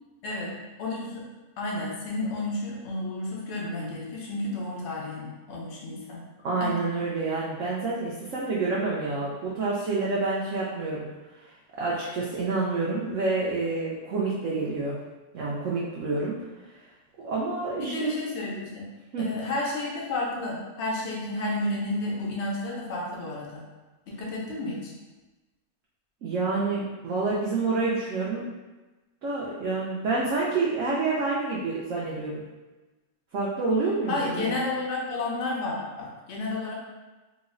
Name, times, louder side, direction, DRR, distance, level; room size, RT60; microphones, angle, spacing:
voice 1, 0.8-1.3 1.6-6.2 6.6-6.8 17.8-18.9 19.2-23.6 24.1-24.9 34.1-36.7, left 2 dB, 80° left, -4 dB, 0.6 m, -31 dB
voice 2, 6.4-11.1 11.8-14.9 15.3-16.3 17.2-18.1 19.1-19.2 26.2-28.5 29.2-32.4 33.3-34.6, right 3 dB, 85° right, -6 dB, 0.6 m, -28 dB
3.1 x 2.0 x 3.6 m, 1.2 s
omnidirectional pair, 1.9 m